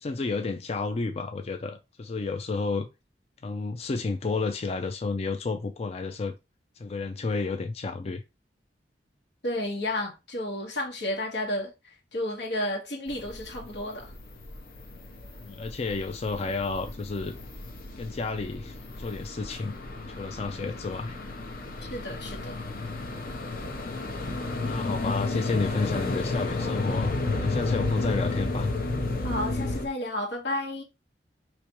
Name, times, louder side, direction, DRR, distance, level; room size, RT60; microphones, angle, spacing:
voice 1, 0.0-2.9 3.4-6.4 6.8-8.2 15.4-17.4 18.0-19.8 20.1-21.2 24.6-28.7, left 3 dB, 35° left, 0.4 m, -31 dB
voice 2, 9.4-11.7 12.1-14.1 21.9-22.6 29.2-30.8, left 1 dB, 75° left, 1.3 m, -32 dB
sound 1, 13.1-29.9, left 2 dB, 55° left, 0.8 m, -32 dB
4.9 x 3.0 x 3.0 m
head